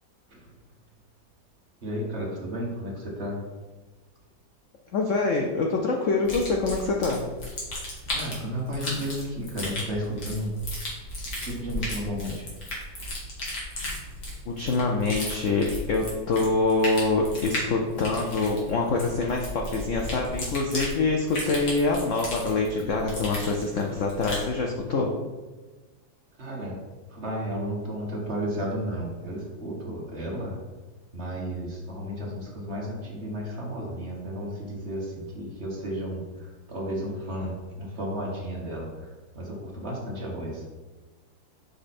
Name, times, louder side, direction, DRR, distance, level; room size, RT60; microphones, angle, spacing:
voice 1, 0.3-0.6 1.8-3.5 8.1-10.7 11.4-12.5 26.3-26.8 27.1-30.6 31.1-40.7, equal, 40° right, -3 dB, 1.4 m, -33 dB
voice 2, 4.9-7.2 14.5-25.1, left 3 dB, 75° left, 1 dB, 0.7 m, -25 dB
sound 1, 6.2-24.5, left 1 dB, 55° left, 2.4 m, -35 dB
5.8 x 5.4 x 4.2 m, 1.3 s
omnidirectional pair, 2.1 m